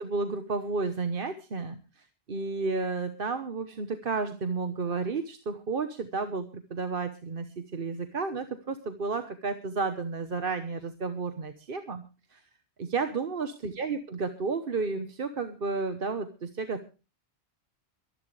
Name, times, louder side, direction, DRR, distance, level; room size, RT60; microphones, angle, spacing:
voice 1, 0.0-12.0 12.3-12.4 12.8-16.8, right 4 dB, 55° right, 8 dB, 1.3 m, -32 dB
23.5 x 11.5 x 3.3 m, 0.33 s
omnidirectional pair, 1.1 m